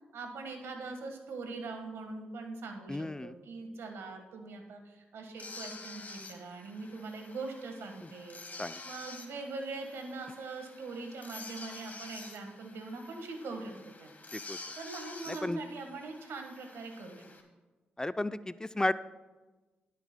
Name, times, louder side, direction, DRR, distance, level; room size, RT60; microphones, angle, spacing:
voice 1, 0.1-13.7 14.0-14.2 14.8-17.2, right 3 dB, 80° right, 4 dB, 1.5 m, -42 dB
voice 2, 2.9-3.3 8.6-8.8 14.3-14.6 15.4-15.6 18.0-18.9, left 1 dB, 15° left, 14 dB, 0.4 m, -33 dB
sound 1, 5.4-17.4, left 3 dB, 40° left, 1.9 m, -49 dB
23.0 x 8.3 x 2.2 m, 1.2 s
supercardioid pair, 45°, 4 cm